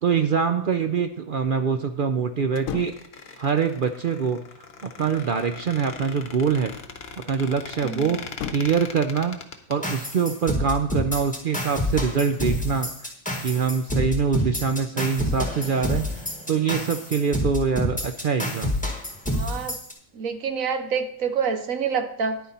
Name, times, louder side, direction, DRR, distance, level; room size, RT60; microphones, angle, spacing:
voice 1, 0.0-2.9 3.4-4.4 4.8-6.7 7.3-8.2 8.5-9.4 9.7-13.1 13.4-16.0 16.5-18.7, right 6 dB, 60° right, 7 dB, 0.6 m, -24 dB
sound 1, 2.5-3.2 4.8-5.6 8.2-8.9, left 9 dB, 80° left, 1.1 m, -36 dB
Squeak, 2.5-9.8, left 5 dB, 50° left, 1.1 m, -40 dB
voice 2, 7.8-8.1 19.3-19.7 20.1-22.4, right 6 dB, 80° right, 9 dB, 1.3 m, -27 dB
sound 2, 9.8-19.9, left 1 dB, 5° left, 1.7 m, -28 dB
10.5 x 9.1 x 4.2 m, 0.65 s
omnidirectional pair, 1.4 m